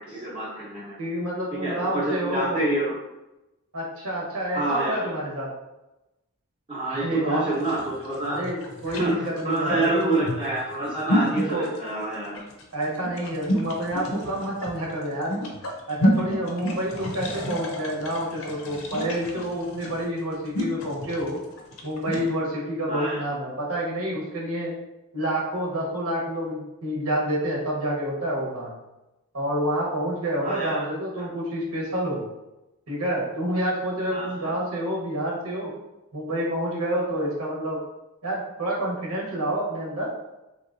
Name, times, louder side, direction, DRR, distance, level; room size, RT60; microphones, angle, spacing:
voice 1, 0.0-0.9 1.6-2.9 4.5-5.1 6.7-8.4 9.0-12.4 22.9-23.2 30.4-30.8 34.1-34.5, right 2 dB, 25° right, -8 dB, 0.6 m, -27 dB
voice 2, 1.0-2.6 3.7-5.5 6.9-7.5 8.3-10.3 11.3-11.7 12.7-15.4 15.9-21.4 21.8-24.7 25.1-28.7 29.3-32.3 32.9-35.7 36.1-37.8 38.2-40.1, right 1 dB, 75° right, -3 dB, 1.0 m, -28 dB
sound 1, 7.5-22.3, equal, 65° left, 0.6 m, -30 dB
3.4 x 2.8 x 2.5 m, 0.97 s
head